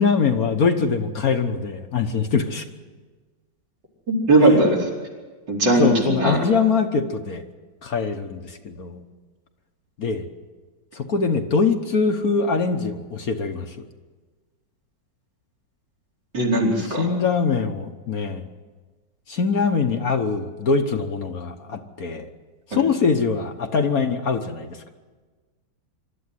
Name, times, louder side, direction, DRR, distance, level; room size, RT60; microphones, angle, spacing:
voice 1, 0.0-2.7 5.8-7.4 7.8-9.0 10.0-10.3 10.9-13.8 16.9-18.5 19.3-22.3 22.7-24.9, left 5 dB, 55° left, 6 dB, 1.5 m, -23 dB
voice 2, 4.1-4.9 5.5-6.4 16.3-17.1 22.7-22.8, right 1 dB, 65° right, -3 dB, 5.3 m, -19 dB
24.5 x 13.0 x 9.7 m, 1.4 s
omnidirectional pair, 2.0 m